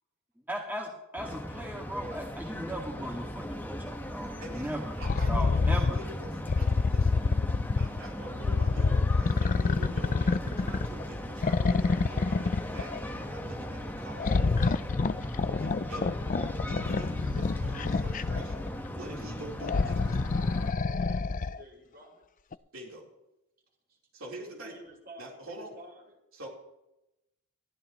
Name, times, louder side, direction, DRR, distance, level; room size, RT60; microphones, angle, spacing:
voice 1, 0.5-5.0 5.3-6.0, equal, 10° right, 0 dB, 1.9 m, -37 dB
sound 1, 1.2-20.7, equal, 10° left, 1.3 m, -38 dB
voice 2, 4.4-7.2 7.8-16.0 16.7-20.2 22.7-23.1 24.1-24.7 25.2-25.8 26.3-26.5, right 1 dB, 70° right, -2 dB, 3.9 m, -46 dB
sound 2, 5.0-6.0 6.5-8.0 8.4-11.0 11.4-13.0 14.2-18.7 19.6-21.6 22.5-22.6, left 4 dB, 40° left, 0.4 m, -27 dB
voice 3, 15.5-16.5 20.9-22.2 24.4-26.0, right 1 dB, 50° right, -2 dB, 5.7 m, -49 dB
21.5 x 14.5 x 3.1 m, 0.91 s
head